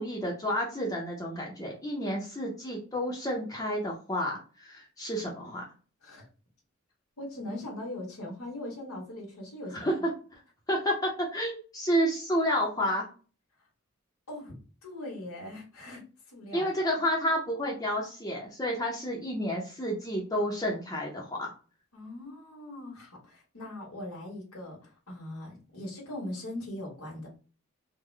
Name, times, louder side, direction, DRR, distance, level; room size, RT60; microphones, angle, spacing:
voice 1, 0.0-5.6 9.7-9.9 10.7-13.1 16.5-21.5, equal, 15° left, -2 dB, 0.6 m, -30 dB
voice 2, 7.2-10.1 14.3-16.0 16.3-16.7 21.9-24.8 25.1-27.3, left 1 dB, 85° left, -3 dB, 1.3 m, -40 dB
3.6 x 2.1 x 3.2 m, 0.37 s
head